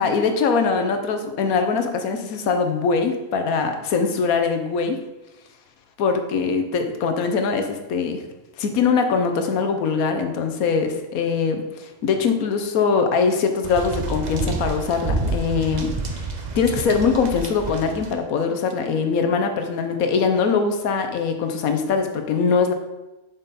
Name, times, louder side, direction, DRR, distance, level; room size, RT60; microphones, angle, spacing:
voice 1, 0.0-5.0 6.0-8.2 8.6-16.3 16.6-22.7, left 5 dB, 75° left, 6 dB, 1.3 m, -22 dB
sound 1, 13.6-18.1, right 3 dB, 40° right, 0.6 m, -28 dB
7.1 x 5.6 x 4.1 m, 1.0 s
omnidirectional pair, 1.5 m